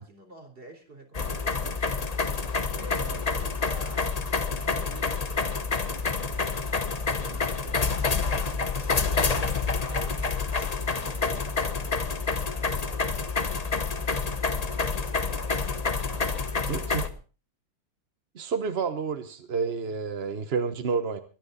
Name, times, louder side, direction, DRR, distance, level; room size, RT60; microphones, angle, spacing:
voice 1, 0.0-2.1 2.8-10.5 10.9-14.1 14.8-17.2, right 2 dB, 25° right, 4 dB, 3.8 m, -49 dB
sound 1, 1.1-17.1, left 4 dB, 80° left, 0.3 m, -28 dB
voice 2, 16.7-17.0 18.3-21.2, right 5 dB, 50° right, 9 dB, 0.7 m, -29 dB
23.5 x 10.5 x 4.1 m, 0.35 s
omnidirectional pair, 2.4 m